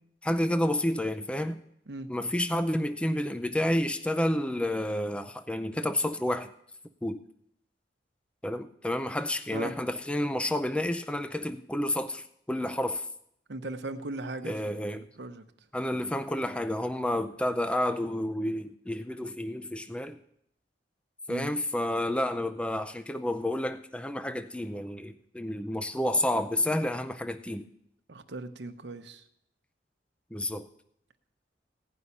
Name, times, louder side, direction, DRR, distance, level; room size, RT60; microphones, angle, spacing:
voice 1, 0.2-1.6 2.1-6.5 7.0-7.2 8.4-13.1 14.4-15.1 15.7-20.2 21.3-27.7 30.3-30.7, left 1 dB, 5° left, 10 dB, 0.5 m, -30 dB
voice 2, 13.5-15.4 21.3-21.5 28.1-29.2, right 2 dB, 70° right, 7 dB, 1.0 m, -38 dB
16.5 x 5.6 x 9.7 m, 0.73 s
head